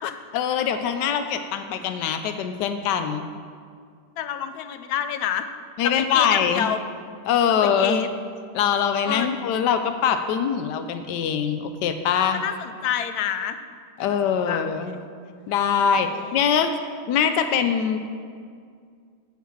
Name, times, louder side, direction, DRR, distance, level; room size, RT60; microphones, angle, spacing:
voice 1, 0.3-3.3 5.8-6.7 7.3-8.0 8.5-12.4 14.0-15.0 15.5-16.7 17.1-18.0, left 7 dB, 90° left, 8 dB, 1.2 m, -23 dB
voice 2, 4.2-5.5 5.8-6.8 7.5-8.1 9.0-9.3 12.3-13.6 14.1-14.2 14.4-15.0 15.8-16.3, left 9 dB, 70° left, 9 dB, 1.1 m, -28 dB
9.3 x 6.4 x 7.3 m, 2.1 s
omnidirectional pair, 1.8 m